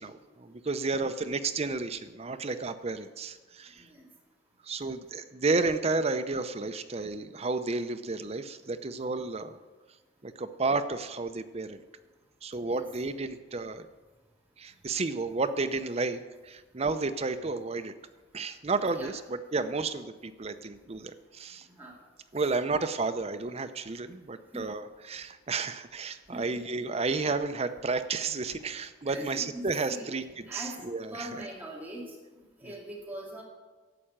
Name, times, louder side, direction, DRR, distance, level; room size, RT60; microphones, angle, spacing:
voice 1, 0.0-3.8 4.7-9.6 10.2-11.8 12.4-13.9 14.6-17.9 18.3-21.7 22.3-31.3 32.6-32.7, right 3 dB, 35° right, 10 dB, 0.6 m, -32 dB
voice 2, 3.8-4.1 12.6-12.8 18.9-19.1 21.8-21.9 24.5-24.7 26.3-26.6 29.1-30.1 30.5-30.8 31.1-32.1 32.6-33.4, right 1 dB, 10° right, -4 dB, 2.3 m, -41 dB
11.5 x 7.7 x 8.7 m, 1.3 s
head